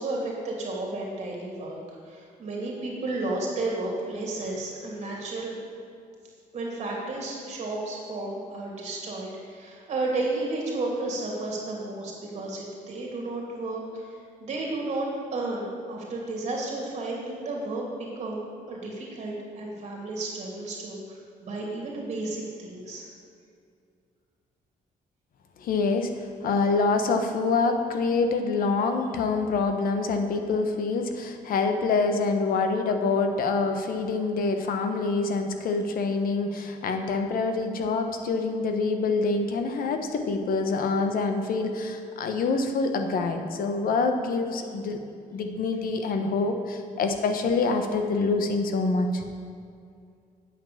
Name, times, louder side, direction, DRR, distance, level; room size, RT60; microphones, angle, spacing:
voice 1, 0.0-1.8 2.0-5.5 6.5-23.1, right 2 dB, 45° right, -2 dB, 2.8 m, -32 dB
voice 2, 25.6-45.0 45.3-49.2, left 3 dB, 70° left, 6 dB, 1.0 m, -26 dB
9.1 x 8.0 x 7.0 m, 2.3 s
cardioid pair, 165°, 15 cm